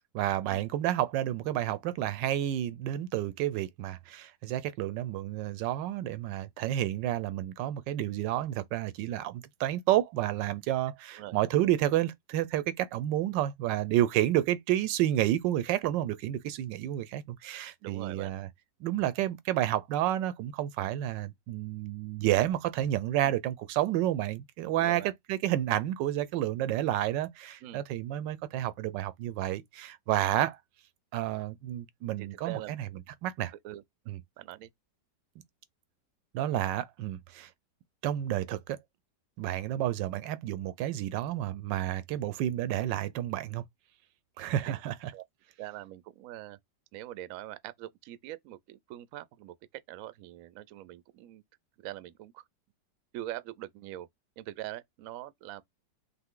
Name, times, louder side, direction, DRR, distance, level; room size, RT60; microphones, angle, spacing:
voice 1, 0.1-18.5 18.8-30.6 31.1-32.9 33.2-33.5 34.1-34.2 36.3-37.5 38.0-38.8 39.4-43.6 44.4-45.1, right 13 dB, 90° right, 1.3 m, -30 dB
voice 2, 17.8-18.3 24.8-25.1 27.6-27.8 32.2-32.7 33.6-33.8 34.4-34.7 44.7-44.8 45.1-45.2 45.6-46.6 46.9-49.5 49.9-51.4 51.8-52.4 53.1-54.1 54.4-55.6, right 14 dB, 70° right, 0.8 m, -43 dB
5.6 x 2.0 x 3.7 m
omnidirectional pair, 1.9 m